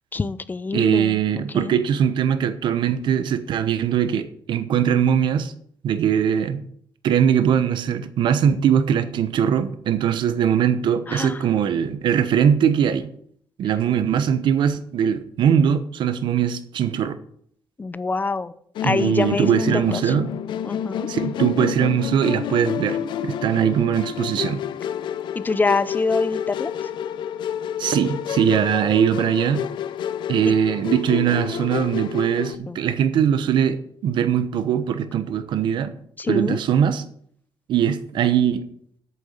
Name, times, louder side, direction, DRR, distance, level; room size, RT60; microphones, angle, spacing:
voice 1, 0.1-1.8 11.1-11.4 17.8-18.5 18.8-20.1 20.6-21.1 25.3-26.7 30.4-30.5 32.7-32.8 36.2-36.6, left 3 dB, 25° left, 15 dB, 0.6 m, -25 dB
voice 2, 0.7-5.5 5.8-6.6 7.0-13.1 13.6-17.2 18.8-20.3 21.1-24.6 27.8-29.6 30.3-35.9 36.3-37.0 37.7-38.6, right 8 dB, 80° right, 11 dB, 1.0 m, -21 dB
Musical instrument, 18.7-32.5, left 9 dB, 80° left, 0.6 m, -29 dB
9.1 x 6.9 x 8.2 m, 0.65 s
cardioid pair, 120°, 8 cm